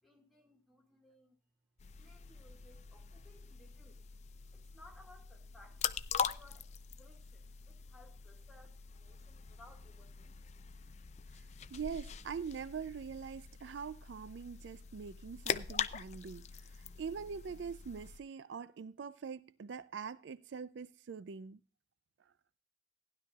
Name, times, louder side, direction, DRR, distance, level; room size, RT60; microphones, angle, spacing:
voice 1, 0.0-1.4 2.0-4.1 4.5-10.6, left 1 dB, ahead, 2.0 m, -62 dB
sound 1, 1.8-18.2, left 7 dB, 35° left, 0.4 m, -43 dB
voice 2, 11.3-21.6, right 6 dB, 70° right, 0.4 m, -44 dB
15.5 x 11.0 x 2.3 m
head